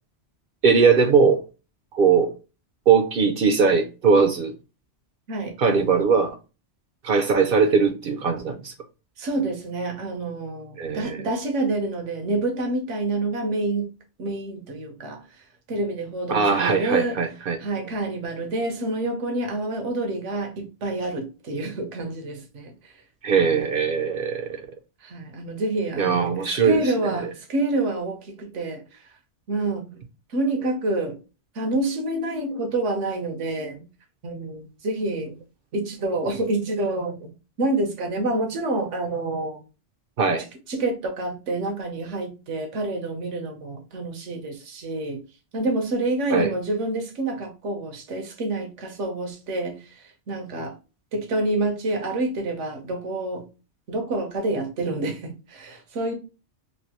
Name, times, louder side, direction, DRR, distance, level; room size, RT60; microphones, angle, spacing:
voice 1, 0.6-1.4 1.9-2.3 2.9-4.5 5.6-6.4 7.0-8.7 10.8-11.2 16.3-17.6 23.2-24.6 26.0-26.8 40.2-40.4 46.3-46.5, right 5 dB, 60° right, 0.7 m, -20 dB
voice 2, 5.3-5.6 9.2-13.9 14.2-17.2 17.6-22.9 25.0-29.0 29.5-30.0 30.3-31.2 31.5-33.8 34.2-35.4 35.7-37.3 37.6-39.6 40.7-45.2 45.5-50.8 51.1-53.5 53.9-56.1, right 2 dB, 85° right, 1.2 m, -28 dB
3.3 x 2.6 x 2.8 m
omnidirectional pair, 1.2 m